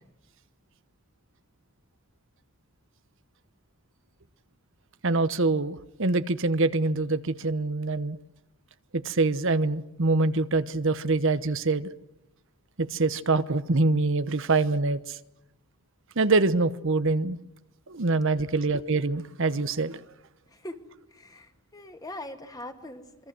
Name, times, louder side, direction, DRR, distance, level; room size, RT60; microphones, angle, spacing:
voice 1, 5.0-8.2 8.9-11.9 12.8-15.2 16.2-17.4 17.9-20.0, right 3 dB, 60° right, 12 dB, 1.0 m, -25 dB
voice 2, 21.1-23.3, left 1 dB, 15° left, 6 dB, 2.4 m, -41 dB
27.0 x 24.0 x 7.8 m, 0.85 s
head